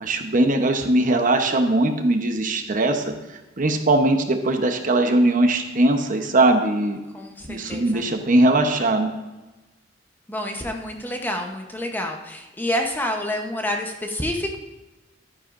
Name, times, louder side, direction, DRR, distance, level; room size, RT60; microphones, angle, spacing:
voice 1, 0.0-3.1 3.6-7.0 7.5-9.1, right 2 dB, 45° right, 5 dB, 0.9 m, -20 dB
voice 2, 7.1-8.0 10.3-14.6, left 1 dB, 10° left, 2 dB, 0.9 m, -28 dB
12.5 x 9.8 x 2.6 m, 1.1 s
head